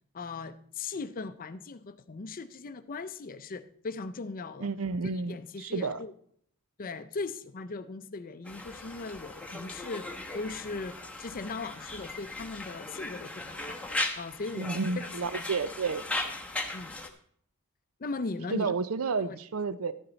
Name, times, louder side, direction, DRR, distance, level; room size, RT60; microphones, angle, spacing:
voice 1, 0.1-4.7 5.1-6.1 6.8-13.8 14.2-15.4 16.7-17.0 18.0-18.7 19.2-19.4, left 3 dB, 40° left, 12 dB, 0.5 m, -38 dB
voice 2, 4.6-6.0 14.5-16.0 18.5-19.9, right 4 dB, 70° right, 15 dB, 0.5 m, -31 dB
Conversation, 8.4-17.1, left 2 dB, 5° left, 1.0 m, -38 dB
12.5 x 8.9 x 4.0 m, 0.64 s
head